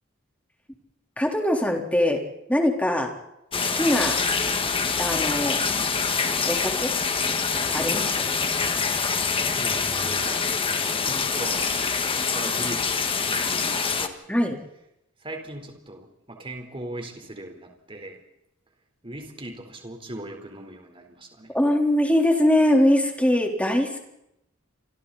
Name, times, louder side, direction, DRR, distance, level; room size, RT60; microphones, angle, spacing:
voice 1, 1.2-2.2 2.5-3.1 3.6-4.2 5.0-5.6 6.5-6.9 7.7-8.3 14.3-14.6 21.5-24.0, left 1 dB, 5° left, 2 dB, 3.8 m, -22 dB
sound 1, 3.5-14.1, left 5 dB, 25° left, 1.7 m, -25 dB
voice 2, 9.4-10.5 10.9-14.2 15.2-18.2 19.0-21.6, right 1 dB, 25° right, 4 dB, 4.1 m, -39 dB
29.0 x 26.0 x 4.2 m, 0.82 s
head